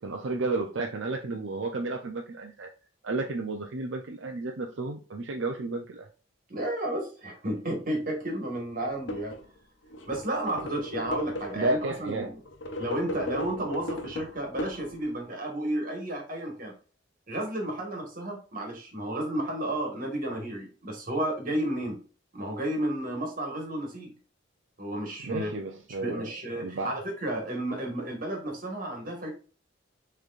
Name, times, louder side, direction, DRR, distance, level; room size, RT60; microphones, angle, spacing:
voice 1, 0.0-2.7 3.0-6.1 11.6-12.4 25.2-26.3 26.6-26.9, right 3 dB, 85° right, 2 dB, 0.6 m, -32 dB
voice 2, 6.5-9.3 10.1-12.3 12.8-16.7 17.3-22.0 22.3-24.1 24.8-25.5 26.0-29.3, right 1 dB, 45° right, 1 dB, 1.7 m, -32 dB
sound 1, 8.9-9.4 9.9-11.8 12.5-15.2, left 1 dB, 80° left, 0.9 m, -36 dB
6.4 x 3.3 x 2.5 m, 0.38 s
head